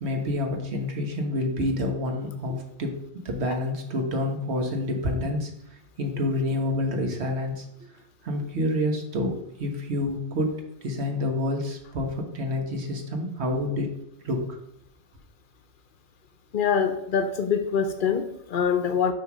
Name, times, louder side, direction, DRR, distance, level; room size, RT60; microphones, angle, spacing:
voice 1, 0.0-3.0 3.2-5.5 6.0-7.7 8.2-10.5 10.8-13.9 14.2-14.6, left 1 dB, 80° right, 3 dB, 1.4 m, -28 dB
voice 2, 16.5-19.1, left 7 dB, 60° left, 8 dB, 0.7 m, -24 dB
6.4 x 3.4 x 6.0 m, 0.80 s
omnidirectional pair, 1.1 m